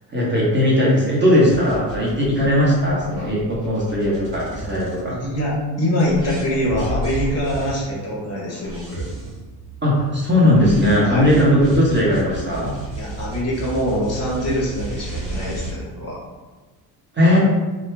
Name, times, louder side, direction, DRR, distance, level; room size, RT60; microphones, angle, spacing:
voice 1, 0.1-5.1 9.8-12.7 17.1-17.4, left 1 dB, 25° right, -6 dB, 1.0 m, -18 dB
sound 1, 1.5-5.5 6.0-15.7, right 2 dB, 70° right, 1.1 m, -33 dB
voice 2, 5.1-9.0 11.0-11.3 12.9-16.2, equal, 30° left, -5 dB, 1.1 m, -24 dB
2.8 x 2.3 x 3.3 m, 1.3 s
supercardioid pair, 85°, 48 cm